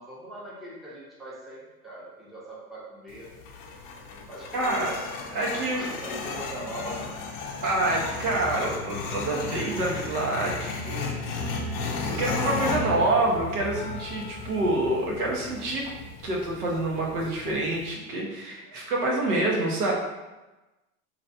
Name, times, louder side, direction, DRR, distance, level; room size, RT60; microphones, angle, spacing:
voice 1, 0.0-3.3 4.1-5.0 5.8-7.2 8.6-8.9 18.7-18.8, equal, ahead, -7 dB, 0.7 m, -41 dB
sound 1, 3.1-17.9, left 3 dB, 40° left, 0.5 m, -34 dB
voice 2, 4.5-5.0 5.3-6.1 7.6-11.1 12.1-15.8 16.2-19.9, right 2 dB, 75° right, -2 dB, 1.0 m, -27 dB
3.1 x 2.9 x 2.6 m, 1.1 s
hypercardioid pair, 105°, 45 cm